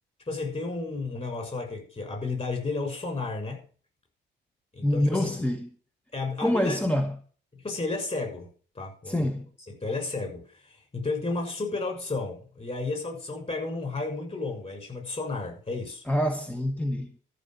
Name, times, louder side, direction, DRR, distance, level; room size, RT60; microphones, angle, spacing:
voice 1, 0.3-3.6 4.7-5.3 6.1-6.8 7.5-8.5 8.7-9.3 9.7-16.0, left 3 dB, 30° left, 6.6 m, -32 dB
voice 2, 4.8-5.7 6.4-7.2 9.1-9.5 16.1-17.1, left 1 dB, 5° left, 1.2 m, -26 dB
13.5 x 5.7 x 7.8 m
cardioid pair, 90°, 20 cm